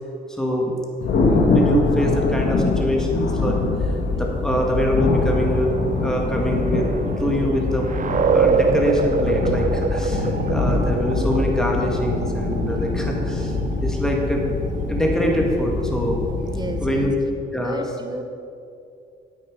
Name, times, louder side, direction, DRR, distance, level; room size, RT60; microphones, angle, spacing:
voice 1, 0.3-0.7 1.2-3.6 4.2-5.7 6.0-6.9 7.2-7.9 8.3-14.4 14.9-16.3 16.8-17.1 17.5-17.8, equal, 5° left, -1 dB, 1.9 m, -24 dB
Thunder, 1.0-17.0, left 3 dB, 70° left, 1.6 m, -23 dB
sound 1, 5.5-16.9, right 5 dB, 40° right, 0.7 m, -27 dB
voice 2, 16.4-17.1 17.5-18.2, right 2 dB, 20° right, 6 dB, 1.1 m, -32 dB
9.7 x 8.4 x 5.2 m, 2.5 s
cardioid pair, 90°, 20 cm